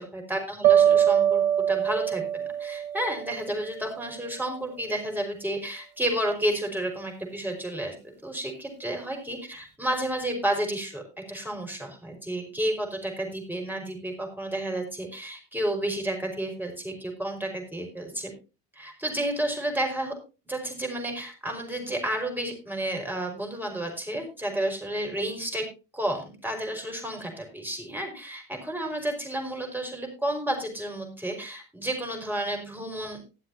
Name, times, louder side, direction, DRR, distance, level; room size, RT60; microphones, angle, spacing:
voice 1, 0.0-1.4 1.7-11.0 11.3-18.3 18.8-20.1 20.5-25.6 25.9-33.2, right 1 dB, 5° right, 1 dB, 5.2 m, -31 dB
sound 1, 0.6-3.7, right 9 dB, 45° right, 1.5 m, -23 dB
21.0 x 7.4 x 2.8 m, 0.31 s
figure-of-eight pair, 60°, 48 cm